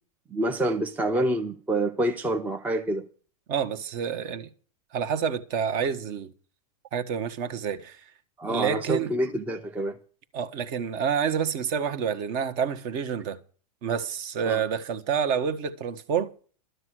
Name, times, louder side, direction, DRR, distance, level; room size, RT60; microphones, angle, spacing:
voice 1, 0.3-3.1 8.4-10.0 14.4-14.6, right 1 dB, 10° right, 0.7 m, -27 dB
voice 2, 3.5-4.5 4.9-6.3 6.9-8.0 8.5-9.1 10.3-13.4 13.8-16.3, right 7 dB, 40° right, 1.4 m, -28 dB
12.5 x 9.5 x 6.3 m
hypercardioid pair, 135°, 20 cm